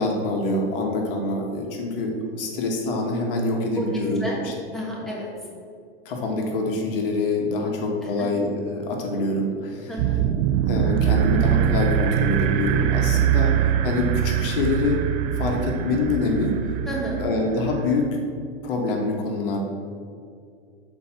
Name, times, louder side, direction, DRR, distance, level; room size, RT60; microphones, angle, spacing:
voice 1, 0.0-4.5 5.0-5.1 6.0-9.9 10.7-15.0 15.4-16.6 17.2-18.2 18.6-19.6, left 2 dB, 65° left, 1 dB, 1.5 m, -25 dB
voice 2, 4.7-5.3 8.0-8.3 9.9-10.2 16.8-17.2, equal, ahead, -5 dB, 1.7 m, -31 dB
sound 1, 10.0-18.1, right 10 dB, 45° right, 0.4 m, -23 dB
6.8 x 4.4 x 6.1 m, 2.3 s
supercardioid pair, 130°, 29 cm